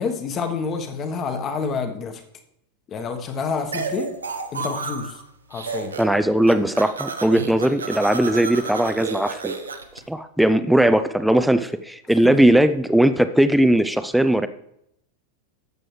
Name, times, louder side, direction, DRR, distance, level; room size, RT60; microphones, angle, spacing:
voice 1, 0.0-2.2 2.9-4.1 4.5-5.2 5.5-6.0 12.2-12.3, left 5 dB, 30° left, 6 dB, 1.3 m, -28 dB
sound 1, 3.7-5.2 5.5-6.2 6.4-10.0, right 4 dB, 75° right, 1.0 m, -31 dB
voice 2, 6.0-9.5 10.1-14.5, right 1 dB, ahead, 11 dB, 0.5 m, -18 dB
13.5 x 7.7 x 3.3 m, 0.76 s
figure-of-eight pair, 90°, 0 cm